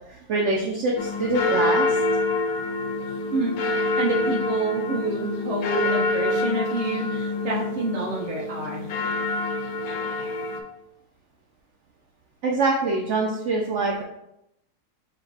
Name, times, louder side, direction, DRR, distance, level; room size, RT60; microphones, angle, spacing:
voice 1, 0.1-1.9 12.4-14.0, right 2 dB, 65° right, 0 dB, 0.7 m, -24 dB
sound 1, 1.0-10.6, left 2 dB, 70° left, 1.0 m, -26 dB
voice 2, 3.3-8.9, right 2 dB, 30° right, -4 dB, 0.9 m, -28 dB
4.6 x 2.2 x 4.7 m, 0.82 s
omnidirectional pair, 1.7 m